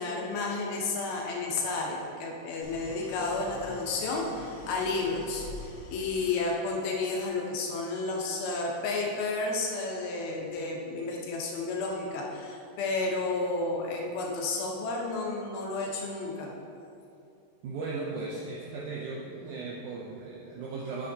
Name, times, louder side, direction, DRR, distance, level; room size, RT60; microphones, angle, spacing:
voice 1, 0.0-16.5, left 3 dB, 85° left, -1 dB, 2.9 m, -31 dB
Idling, 2.6-6.8, left 1 dB, 65° left, 2.4 m, -46 dB
voice 2, 17.6-21.1, right 3 dB, 80° right, -3 dB, 1.8 m, -37 dB
8.7 x 7.4 x 2.8 m, 2.6 s
omnidirectional pair, 4.2 m